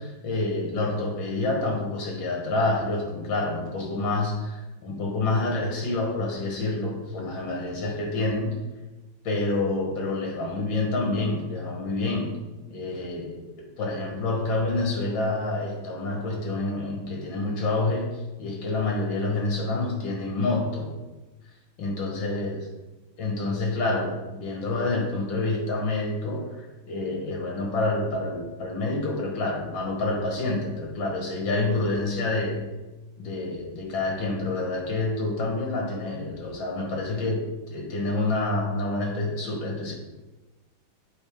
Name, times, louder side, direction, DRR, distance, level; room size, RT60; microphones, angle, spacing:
voice 1, 0.0-8.6 9.2-12.3 12.7-20.9 21.8-22.6 23.2-32.6 33.2-39.9, left 2 dB, 70° left, 0 dB, 2.0 m, -28 dB
8.0 x 4.4 x 3.5 m, 1.1 s
omnidirectional pair, 2.2 m